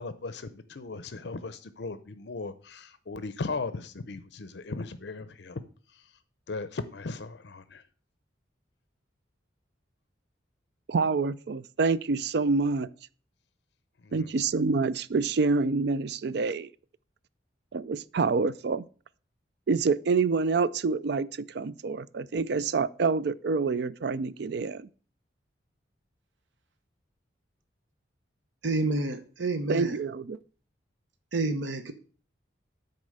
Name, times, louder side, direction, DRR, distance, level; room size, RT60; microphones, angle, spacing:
voice 1, 0.0-5.6 6.5-7.8 14.0-14.3, left 3 dB, 60° left, 0.6 m, -37 dB
voice 2, 10.9-12.9 14.1-16.7 17.7-18.8 19.7-24.9 29.7-30.4, right 4 dB, 60° right, 0.4 m, -27 dB
voice 3, 28.6-30.0 31.3-31.9, right 2 dB, 80° right, 0.9 m, -29 dB
9.5 x 4.3 x 6.5 m
head